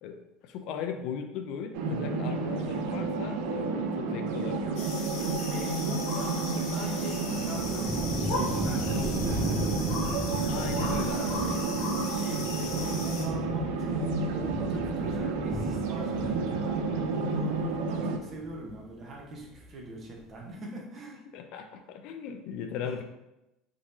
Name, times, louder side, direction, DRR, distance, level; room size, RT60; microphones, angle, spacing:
voice 1, 0.0-4.8 10.5-11.4 21.3-23.0, left 7 dB, 60° left, 6 dB, 0.4 m, -38 dB
sound 1, 1.7-18.2, right 4 dB, 75° right, 0.4 m, -31 dB
voice 2, 1.9-2.3 5.2-9.8 10.6-12.4 12.7-21.2 22.8-23.0, right 1 dB, 35° right, -1 dB, 0.9 m, -42 dB
sound 2, 4.8-13.3, left 3 dB, 85° left, 0.8 m, -38 dB
sound 3, 6.7-18.9 19.2-19.9, right 1 dB, 10° right, 1.2 m, -36 dB
3.6 x 2.9 x 2.6 m, 0.94 s
cardioid pair, 130°, 0 cm